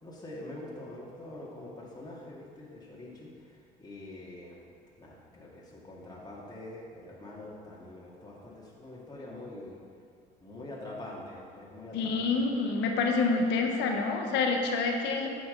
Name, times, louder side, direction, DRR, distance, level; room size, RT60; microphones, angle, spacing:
voice 1, 0.0-4.6 5.0-9.8 10.4-12.3, left 1 dB, 20° left, -5 dB, 2.1 m, -45 dB
voice 2, 11.9-15.3, left 4 dB, 65° left, 3 dB, 1.1 m, -27 dB
9.4 x 6.1 x 3.9 m, 2.2 s
hypercardioid pair, 60°, 19 cm